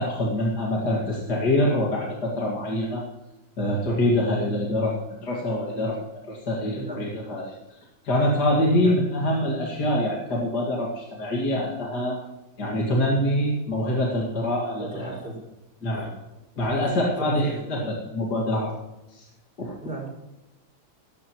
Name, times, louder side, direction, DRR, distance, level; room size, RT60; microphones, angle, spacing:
voice 1, 0.0-3.0 3.6-6.0 6.3-7.6 8.0-12.2 12.6-15.1 15.8-16.1 16.6-17.8 18.1-18.7 19.1-19.2 19.6-19.7, left 1 dB, 55° left, -3 dB, 2.6 m, -25 dB
voice 2, 6.8-7.1 8.8-9.0 14.8-15.4 15.9-16.1 16.6-17.9 19.8-20.1, right 2 dB, 5° right, -2 dB, 5.8 m, -36 dB
17.5 x 15.0 x 3.1 m, 0.98 s
omnidirectional pair, 2.1 m